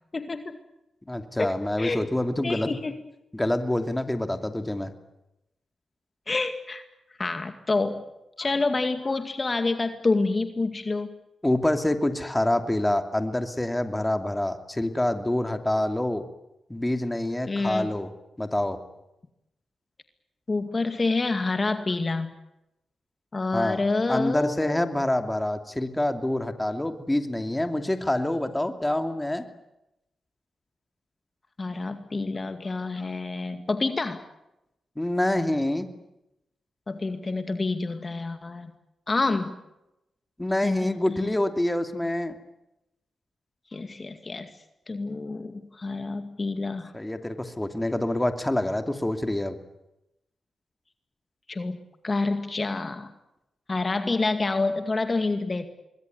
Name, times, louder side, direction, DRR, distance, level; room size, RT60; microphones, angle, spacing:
voice 1, 0.1-0.6 1.4-2.1 2.4-2.9 6.3-6.8 7.2-8.0 8.4-11.1 17.5-17.9 20.5-22.3 23.3-24.8 31.6-34.2 36.9-38.7 39.1-39.6 40.6-41.4 43.7-44.5 44.9-46.9 51.5-51.8 52.0-53.1 53.7-55.7, left 3 dB, 40° left, 8 dB, 2.2 m, -28 dB
voice 2, 1.1-2.8 3.3-4.9 11.4-16.2 16.7-18.1 18.4-18.8 23.5-23.8 24.1-29.5 35.0-35.9 40.4-42.4 46.9-49.6, left 1 dB, 15° left, 7 dB, 2.7 m, -26 dB
24.5 x 21.5 x 9.5 m, 0.90 s
supercardioid pair, 50°, 0 cm